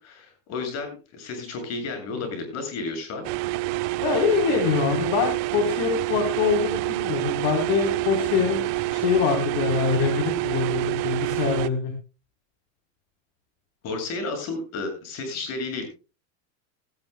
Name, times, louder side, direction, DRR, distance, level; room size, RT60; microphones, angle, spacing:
voice 1, 0.0-3.3 13.8-15.9, left 3 dB, 40° left, 5 dB, 7.5 m, -32 dB
sound 1, 3.2-11.7, right 18 dB, 60° right, 1.0 m, -27 dB
voice 2, 4.0-8.6 8.9-11.9, left 6 dB, 60° left, 3 dB, 4.0 m, -24 dB
17.5 x 16.0 x 2.2 m, 0.32 s
supercardioid pair, 150°, 38 cm